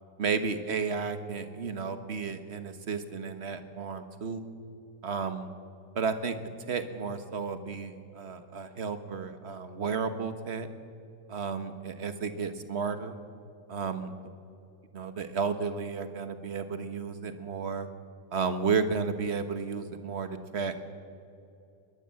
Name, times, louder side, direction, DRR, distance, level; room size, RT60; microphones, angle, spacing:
voice 1, 0.2-4.4 5.0-5.5 5.9-6.4 6.7-10.7 11.3-13.1 13.7-14.1 14.9-17.9 18.3-20.8, right 5 dB, 40° right, 9 dB, 1.4 m, -32 dB
22.0 x 19.0 x 7.6 m, 2.7 s
omnidirectional pair, 1.9 m